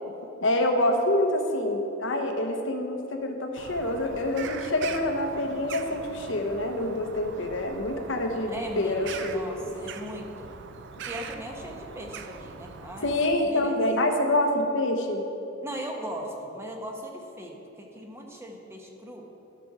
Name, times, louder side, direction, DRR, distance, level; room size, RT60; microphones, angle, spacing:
voice 1, 0.4-9.7 13.0-15.2, left 1 dB, 65° left, 4 dB, 1.0 m, -26 dB
Bird vocalization bird call bird song, 3.6-13.4, right 6 dB, 60° right, 0.5 m, -42 dB
voice 2, 8.5-10.5 11.1-13.8 15.6-19.3, equal, 15° right, 1 dB, 1.0 m, -39 dB
13.0 x 6.0 x 4.9 m, 2.9 s
head